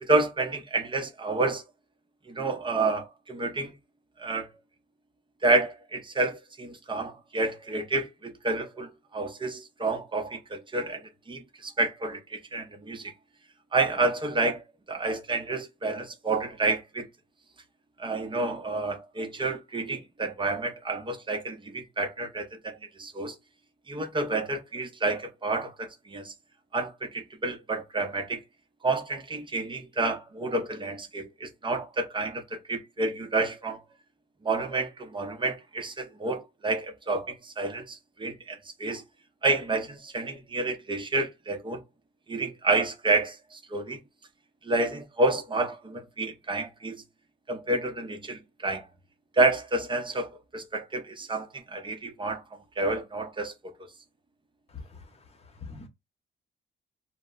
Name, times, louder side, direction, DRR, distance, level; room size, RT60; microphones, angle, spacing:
voice 1, 0.0-1.6 2.3-3.7 4.2-4.5 5.4-13.1 13.7-14.6 14.9-17.1 18.0-23.4 23.9-26.3 26.7-28.4 28.8-33.8 34.4-39.0 39.4-41.8 42.3-44.0 44.6-47.0 47.5-48.9 49.3-52.4 52.8-53.5 53.8-53.9, right 2 dB, 25° right, 0.7 m, -29 dB
voice 2, 54.7-55.9, left 4 dB, 30° left, 0.9 m, -45 dB
2.1 x 2.0 x 3.7 m
cardioid pair, 90°, 20 cm